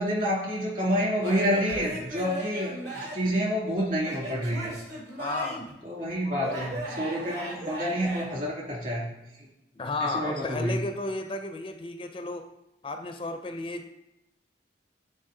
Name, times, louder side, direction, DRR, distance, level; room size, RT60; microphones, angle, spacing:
voice 1, 0.0-4.7 5.8-9.1 9.4-9.5 10.0-10.8, equal, 45° right, -3 dB, 2.2 m, -28 dB
Male speech man speaking / Yell / Laughter, 1.2-3.3 4.0-5.7 6.4-8.2, right 1 dB, 70° right, 2.5 m, -37 dB
voice 2, 5.2-5.7 9.7-12.5 12.8-13.9, left 2 dB, 30° left, 6 dB, 0.4 m, -33 dB
8.9 x 3.9 x 3.8 m, 0.91 s
head